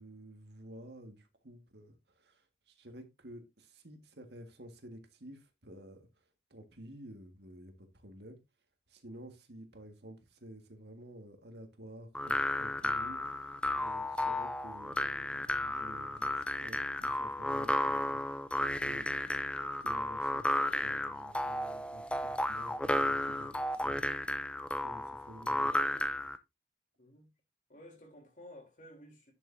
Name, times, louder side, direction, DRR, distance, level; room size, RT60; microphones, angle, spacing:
voice 1, 0.0-6.2 6.5-8.4 8.9-18.5 18.8-19.2 19.8-24.2 24.7-25.7, right 1 dB, 70° right, 1.8 m, -52 dB
sound 1, 12.1-26.4, left 1 dB, 5° left, 0.5 m, -33 dB
voice 2, 27.0-27.3 27.7-29.3, left 1 dB, 45° left, 3.3 m, -53 dB
10.5 x 6.7 x 2.7 m
head